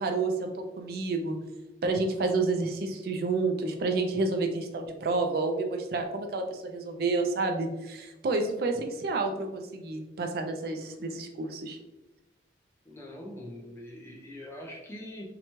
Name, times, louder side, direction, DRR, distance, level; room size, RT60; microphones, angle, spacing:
voice 1, 0.0-1.4 1.8-11.8, right 3 dB, 55° right, 4 dB, 0.3 m, -29 dB
voice 2, 12.9-15.3, left 1 dB, 15° left, -2 dB, 0.5 m, -43 dB
2.8 x 2.2 x 2.9 m, 1.0 s
head